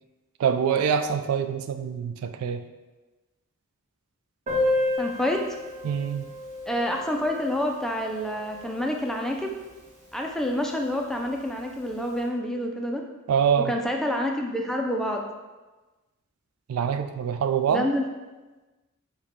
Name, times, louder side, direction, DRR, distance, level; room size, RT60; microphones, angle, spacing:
voice 1, 0.4-2.6 5.8-6.2 13.3-13.7 16.7-17.9, right 7 dB, 80° right, 9 dB, 0.3 m, -25 dB
Piano, 4.5-9.8 10.1-10.2 10.4-10.5 10.9-11.0 11.7-11.9, left 2 dB, 35° right, 1.1 m, -31 dB
voice 2, 5.0-5.4 6.7-9.5 10.1-13.0 13.7-15.2 17.7-18.0, equal, ahead, 1 dB, 0.4 m, -28 dB
4.9 x 2.2 x 4.2 m, 1.2 s
head